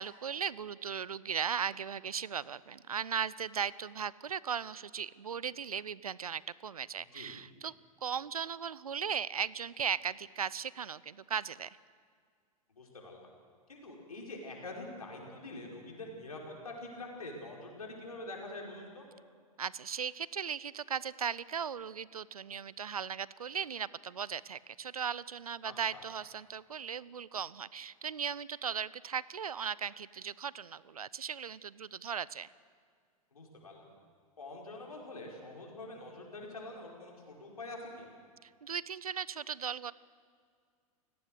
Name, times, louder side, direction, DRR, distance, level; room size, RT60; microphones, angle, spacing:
voice 1, 0.0-7.7 8.0-11.8 19.6-32.5 38.4-39.9, right 7 dB, 75° right, 21 dB, 0.6 m, -37 dB
voice 2, 12.7-13.3 13.7-19.1 25.6-26.0 33.3-33.9 34.4-38.1, left 2 dB, 75° left, -1 dB, 5.4 m, -45 dB
29.5 x 17.5 x 6.6 m, 2.1 s
figure-of-eight pair, 95°, 19 cm